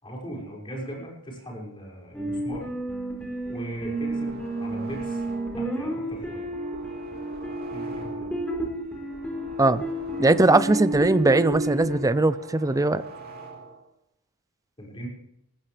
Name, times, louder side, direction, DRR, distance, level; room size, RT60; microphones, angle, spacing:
voice 1, 0.0-2.7 3.5-5.2 5.5-6.4 7.7-8.3 14.8-15.1, right 1 dB, 25° left, 5.8 m, -38 dB
sound 1, 2.1-12.0, right 1 dB, 5° left, 4.3 m, -31 dB
sound 2, 3.4-5.7 6.1-8.5 8.8-11.2 11.5-13.9, right 3 dB, 45° right, 3.2 m, -45 dB
voice 2, 10.2-13.0, right 2 dB, 15° right, 0.5 m, -20 dB
19.5 x 15.0 x 3.4 m
head